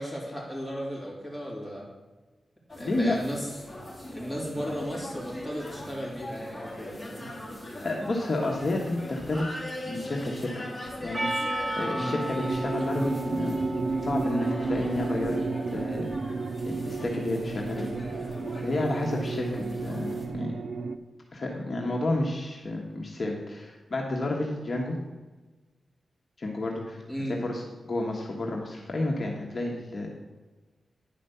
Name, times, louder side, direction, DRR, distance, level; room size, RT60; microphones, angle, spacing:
voice 1, 0.0-1.9 2.7-3.5 4.1-7.3 11.9-12.2 27.1-27.4, equal, 5° right, -4 dB, 3.3 m, -35 dB
sound 1, 2.7-20.3, left 1 dB, 15° left, 2.6 m, -41 dB
voice 2, 2.8-3.2 7.8-10.7 11.0-13.6 14.0-15.4 15.7-16.1 16.6-17.9 18.6-20.5 21.3-25.0 26.4-27.0 27.3-30.1, left 2 dB, 45° left, -1 dB, 1.3 m, -31 dB
Percussion, 11.1-15.7, right 1 dB, 35° right, 1.4 m, -35 dB
sound 2, 12.4-21.0, right 3 dB, 80° right, 0.6 m, -32 dB
10.0 x 5.1 x 6.8 m, 1.2 s
wide cardioid pair, 130°, 0 cm